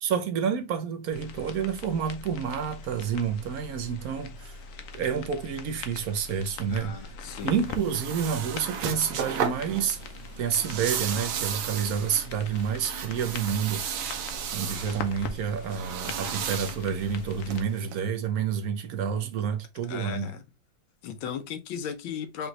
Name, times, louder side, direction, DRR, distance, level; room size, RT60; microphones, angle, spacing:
voice 1, 0.0-4.6 4.9-7.0 7.4-10.0 10.4-13.8 14.5-20.3, right 7 dB, 60° right, 1.1 m, -29 dB
sound 1, 1.1-17.6, left 4 dB, 65° left, 1.0 m, -42 dB
voice 2, 6.7-7.7 19.9-20.4 21.0-22.5, left 7 dB, 80° left, 1.5 m, -36 dB
sound 2, 7.2-18.0, right 8 dB, 80° right, 1.6 m, -35 dB
5.3 x 3.0 x 2.9 m
omnidirectional pair, 2.2 m